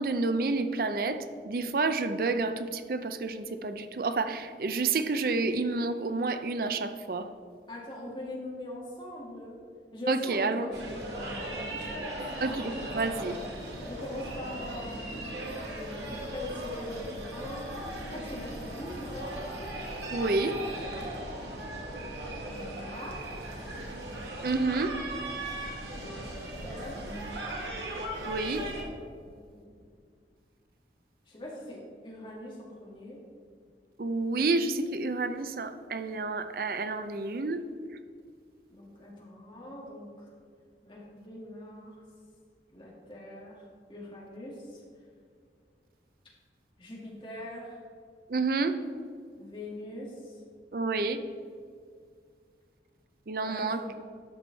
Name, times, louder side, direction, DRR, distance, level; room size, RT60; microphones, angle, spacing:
voice 1, 0.0-7.3 10.1-10.7 12.4-13.4 20.1-20.5 24.4-25.0 28.2-28.7 34.0-37.6 48.3-48.8 50.7-51.2 53.3-53.8, right 3 dB, 55° right, 10 dB, 0.5 m, -29 dB
voice 2, 7.7-9.6 9.9-12.0 13.8-17.7 18.0-19.3 22.2-23.3 26.0-27.1 29.2-29.8 31.3-33.2 38.7-40.3 40.8-42.0 42.7-44.8 46.8-47.8 49.4-50.4 53.4-54.0, left 1 dB, 30° left, -4 dB, 2.1 m, -42 dB
sound 1, 10.7-28.8, right 1 dB, 85° right, 1.8 m, -38 dB
11.5 x 6.1 x 4.1 m, 2.2 s
head